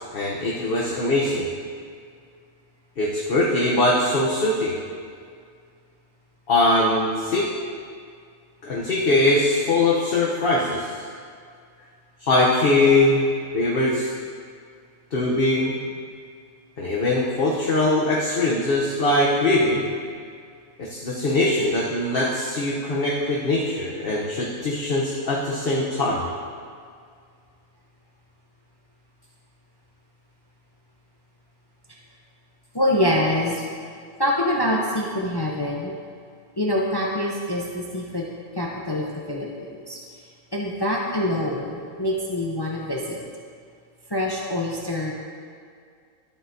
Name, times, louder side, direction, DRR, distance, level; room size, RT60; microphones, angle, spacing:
voice 1, 0.0-1.5 3.0-4.8 6.5-7.5 8.6-10.9 12.2-13.2 13.5-14.1 15.1-15.7 16.8-19.9 20.8-26.3, left 2 dB, 50° left, -4 dB, 1.0 m, -21 dB
voice 2, 32.7-33.6 34.2-36.0 36.6-38.3 38.5-40.0 40.5-43.2 44.1-45.1, left 1 dB, 25° left, -2 dB, 0.6 m, -25 dB
12.0 x 7.7 x 2.7 m, 2.2 s
omnidirectional pair, 1.4 m